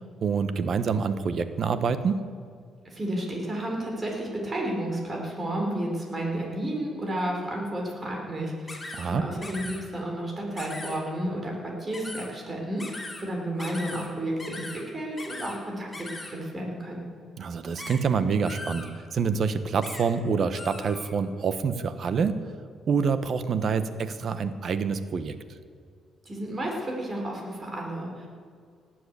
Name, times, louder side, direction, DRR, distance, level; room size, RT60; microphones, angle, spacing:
voice 1, 0.0-2.2 8.9-9.2 17.4-18.9 19.1-22.4 22.9-25.4, right 5 dB, 55° right, 11 dB, 1.1 m, -26 dB
voice 2, 2.9-17.0 26.2-28.3, right 1 dB, 30° right, 0 dB, 4.3 m, -32 dB
sound 1, 8.7-9.1 9.4-9.8 10.6-11.0 11.9-12.3 12.8-13.2 13.6-14.1 14.4-14.8 15.2-15.6 15.9-16.3 17.8-18.0 18.4-18.9 19.8-20.0 20.5-21.1, left 2 dB, 15° left, 3.4 m, -39 dB
18.0 x 7.8 x 8.4 m, 2.2 s
cardioid pair, 90°, 0 cm